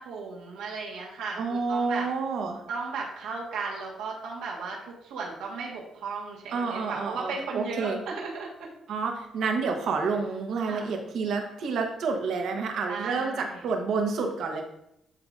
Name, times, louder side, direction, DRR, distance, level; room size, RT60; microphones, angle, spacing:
voice 1, 0.0-2.1 2.7-8.7 10.6-10.9 12.9-13.7, right 4 dB, 90° right, -2 dB, 1.6 m, -35 dB
voice 2, 1.4-2.6 6.5-8.0 8.9-14.6, right 4 dB, 75° right, 3 dB, 1.1 m, -29 dB
11.0 x 3.8 x 2.6 m, 0.81 s
cardioid pair, 90°, 0 cm